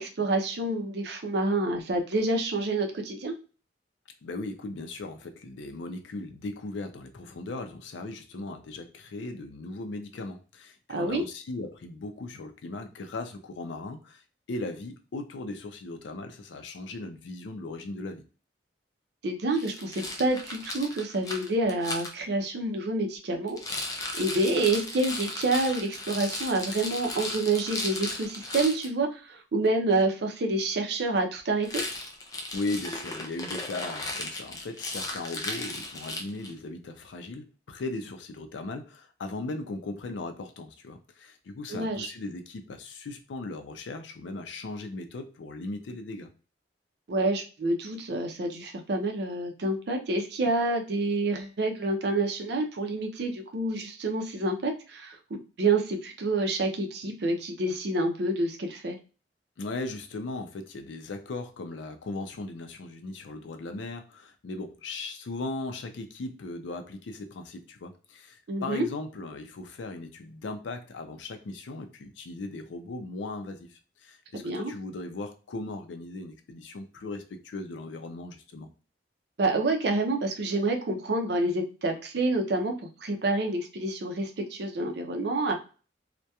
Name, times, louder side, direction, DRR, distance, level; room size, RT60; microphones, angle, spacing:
voice 1, 0.0-3.3 10.9-11.2 19.2-23.6 24.1-31.8 41.7-42.1 47.1-59.0 68.5-68.9 74.3-74.7 79.4-82.7 83.0-85.5, right 2 dB, 65° right, 4 dB, 0.5 m, -28 dB
voice 2, 4.2-14.2 14.5-18.2 32.5-46.3 59.6-78.7, left 2 dB, 85° left, 7 dB, 0.4 m, -38 dB
Rattle, 19.5-22.1 23.5-28.9 31.6-36.6, left 2 dB, 20° left, 0.3 m, -36 dB
2.8 x 2.1 x 2.2 m, 0.35 s
head